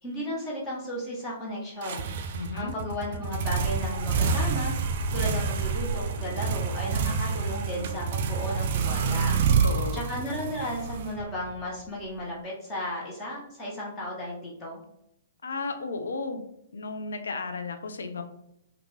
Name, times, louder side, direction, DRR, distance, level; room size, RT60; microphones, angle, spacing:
voice 1, 0.0-2.1 2.5-4.7 5.1-9.4 9.9-14.8, left 1 dB, 20° left, -4 dB, 0.9 m, -34 dB
sound 1, 1.8-11.6, right 5 dB, 50° right, 0.4 m, -28 dB
voice 2, 2.3-2.7 9.5-10.0 15.4-16.4 16.7-18.2, left 3 dB, 80° left, 7 dB, 0.5 m, -34 dB
3.5 x 2.4 x 3.2 m, 0.77 s
hypercardioid pair, 130°, 0 cm